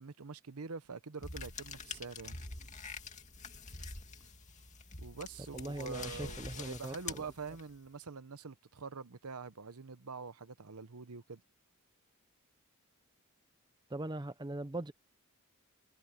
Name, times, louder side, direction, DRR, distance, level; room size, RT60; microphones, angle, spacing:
voice 1, 0.0-2.4 5.0-11.4, right 4 dB, 80° right, 0.9 m, -45 dB
sound 1, 1.2-7.9, left 4 dB, 35° left, 2.4 m, -46 dB
voice 2, 5.5-7.3 13.9-14.9, right 2 dB, 20° right, 0.7 m, -41 dB
head